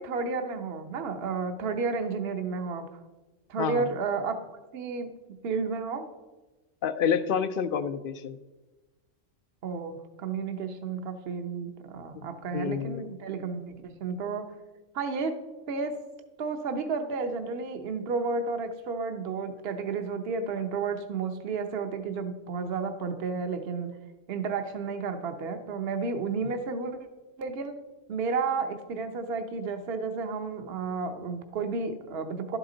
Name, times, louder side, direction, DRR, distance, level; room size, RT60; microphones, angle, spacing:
voice 1, 0.0-2.9 3.5-4.4 4.7-5.1 5.4-6.1 9.6-14.5 14.9-15.4 15.7-16.0 16.4-23.9 24.3-27.0 27.4-27.8 28.1-32.6, right 4 dB, 55° right, 7 dB, 1.0 m, -32 dB
voice 2, 6.8-8.4 12.1-13.0, left 7 dB, 60° left, 12 dB, 0.6 m, -29 dB
12.0 x 8.0 x 3.9 m, 1.2 s
omnidirectional pair, 1.3 m